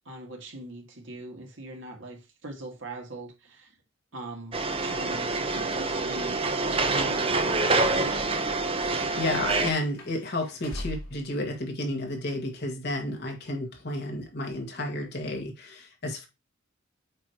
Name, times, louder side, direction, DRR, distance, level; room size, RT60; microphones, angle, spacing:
voice 1, 0.1-3.7 4.1-6.4 6.8-8.3, right 1 dB, 60° right, 2.1 m, -40 dB
sound 1, 4.5-9.7, right 3 dB, 25° right, 0.7 m, -26 dB
sound 2, 7.6-11.3, left 1 dB, 80° left, 2.0 m, -43 dB
voice 2, 8.9-16.3, left 1 dB, 50° left, 1.9 m, -32 dB
8.6 x 3.2 x 4.5 m
head